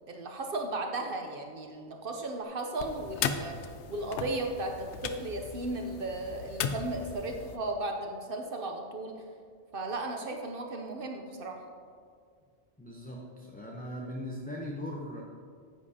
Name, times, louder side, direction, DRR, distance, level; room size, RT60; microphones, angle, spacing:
voice 1, 0.1-9.2 9.7-11.6, right 2 dB, 60° right, 3 dB, 0.9 m, -35 dB
sound 1, 2.8-7.6, left 7 dB, 85° left, 0.9 m, -37 dB
voice 2, 12.8-15.2, equal, 10° left, -2 dB, 0.6 m, -39 dB
9.9 x 8.3 x 2.8 m, 2.1 s
omnidirectional pair, 1.1 m